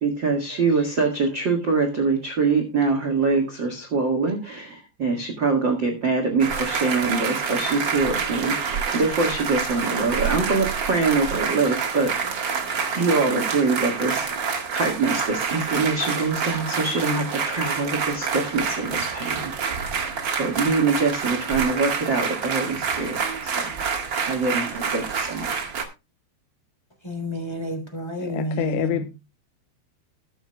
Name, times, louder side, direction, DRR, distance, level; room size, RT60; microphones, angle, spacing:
voice 1, 0.0-12.2 12.9-19.5 20.4-23.2 23.4-23.7 24.2-25.6, right 4 dB, 50° right, 1.3 m, -24 dB
sound 1, 6.4-25.8, right 6 dB, 80° right, 1.0 m, -27 dB
voice 2, 27.0-29.0, right 1 dB, 10° left, 2.3 m, -30 dB
voice 3, 28.2-29.1, left 14 dB, 85° left, 2.8 m, -27 dB
20.5 x 7.0 x 2.2 m
omnidirectional pair, 4.9 m